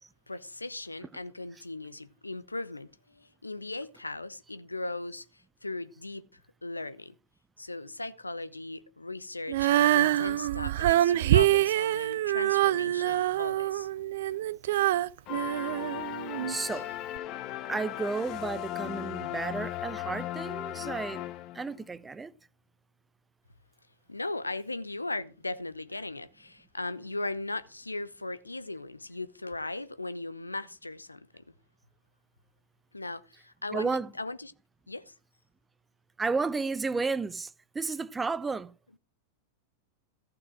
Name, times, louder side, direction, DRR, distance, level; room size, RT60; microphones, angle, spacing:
voice 1, 0.3-6.3 6.6-7.1 7.6-13.9 24.1-31.4 32.9-34.5 34.9-35.1, left 2 dB, 80° left, 0.8 m, -38 dB
Female singing, 9.5-16.5 17.2-17.3, right 14 dB, 55° right, 0.5 m, -25 dB
sound 1, 15.3-21.8, left 14 dB, 40° left, 1.0 m, -37 dB
voice 2, 16.4-16.9 17.6-21.3 21.5-22.3 33.3-33.4 33.7-34.2 36.2-38.7, right 4 dB, 15° right, 0.6 m, -32 dB
14.5 x 6.0 x 6.2 m
figure-of-eight pair, 90°, 0 cm